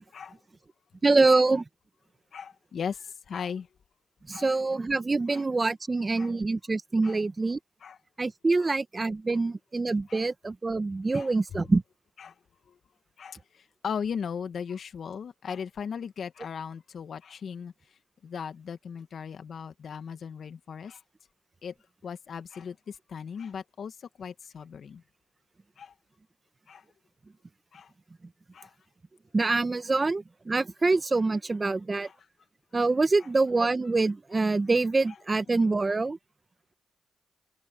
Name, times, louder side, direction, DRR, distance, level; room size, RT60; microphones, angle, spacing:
voice 1, 1.0-1.6 4.3-7.6 8.2-11.8 29.3-32.1 32.7-36.2, right 3 dB, 35° right, 1.4 m, -25 dB
voice 2, 2.3-3.7 4.3-4.5 5.3-5.4 6.2-6.3 7.0-7.2 7.8-8.0 8.6-8.7 9.3-9.4 10.1-10.3 11.1-11.7 12.2-12.3 12.7-12.8 13.2-17.7 18.2-21.0 21.6-21.7 22.0-25.0 25.8-25.9 26.7-26.8 27.7-27.9 28.5-28.7 29.9-30.0 32.0-32.2 35.1-35.2, left 7 dB, 70° left, 2.1 m, -38 dB
supercardioid pair, 55°, 0 cm